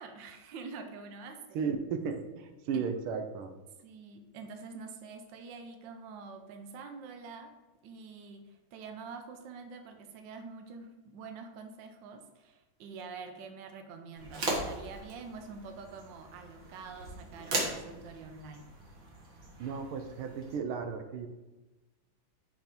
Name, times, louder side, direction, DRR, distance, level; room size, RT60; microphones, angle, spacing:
voice 1, 0.0-1.6 2.7-2.8 3.8-7.5 7.8-18.7, right 4 dB, 70° right, 6 dB, 1.4 m, -46 dB
voice 2, 1.5-3.5 19.6-21.3, right 6 dB, 90° right, 6 dB, 1.5 m, -35 dB
sound 1, 14.2-20.6, right 2 dB, 45° right, 1.7 m, -39 dB
5.7 x 4.7 x 5.1 m, 1.1 s
omnidirectional pair, 2.3 m